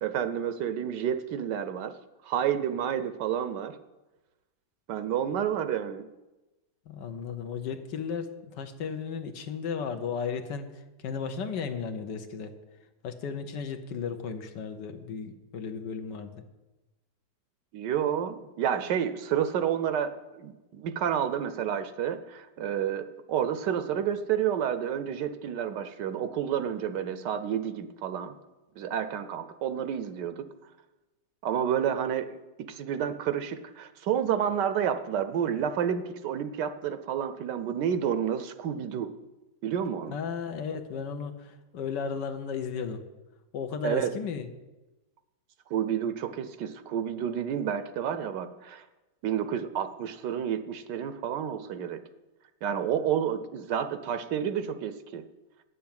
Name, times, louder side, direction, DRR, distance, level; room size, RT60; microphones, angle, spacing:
voice 1, 0.0-1.9 2.2-3.8 4.9-6.1 17.7-28.3 28.8-30.5 31.4-39.2 39.6-40.2 43.8-44.1 45.7-48.8 49.2-52.0 52.6-55.3, right 9 dB, 70° right, 11 dB, 1.2 m, -30 dB
voice 2, 6.9-12.5 13.0-16.3 40.1-43.0 43.5-44.5, left 6 dB, 70° left, 7 dB, 1.5 m, -35 dB
9.2 x 7.1 x 8.7 m, 1.1 s
omnidirectional pair, 2.1 m